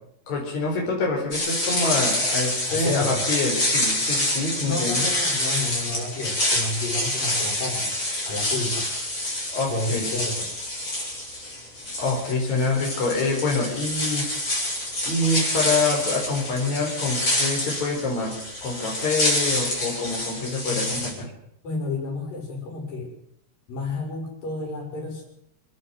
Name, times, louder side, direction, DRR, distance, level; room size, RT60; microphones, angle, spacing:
voice 1, 0.3-5.1 9.5-10.1 12.0-14.3 15.0-21.3, left 3 dB, 55° left, -1 dB, 5.9 m, -26 dB
sound 1, 1.3-21.1, left 1 dB, 35° left, 8.2 m, -27 dB
voice 2, 2.7-3.3 4.6-8.0 8.3-8.9 9.7-10.5 21.6-23.1 23.7-25.2, left 3 dB, 75° left, -1 dB, 7.7 m, -30 dB
27.5 x 10.5 x 9.7 m, 0.75 s
omnidirectional pair, 4.0 m